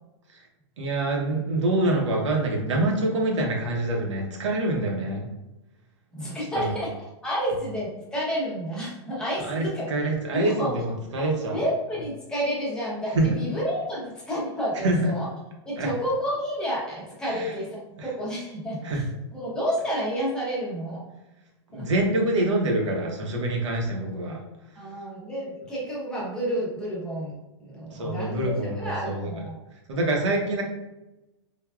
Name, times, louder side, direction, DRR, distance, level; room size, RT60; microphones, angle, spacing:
voice 1, 0.8-5.3 6.6-6.8 9.4-11.6 13.1-13.4 14.7-15.1 15.8-15.9 17.2-17.5 18.0-18.1 18.8-19.1 21.7-24.4 27.9-29.4 29.9-30.6, right 2 dB, 80° right, 0 dB, 0.9 m, -26 dB
voice 2, 6.1-6.9 7.2-9.9 10.3-10.7 11.5-15.3 15.7-18.8 19.3-21.0 21.7-21.9 24.8-27.3 27.6-29.6, equal, 5° left, -6 dB, 0.6 m, -30 dB
3.3 x 2.2 x 2.3 m, 0.98 s
hypercardioid pair, 155°, 15 cm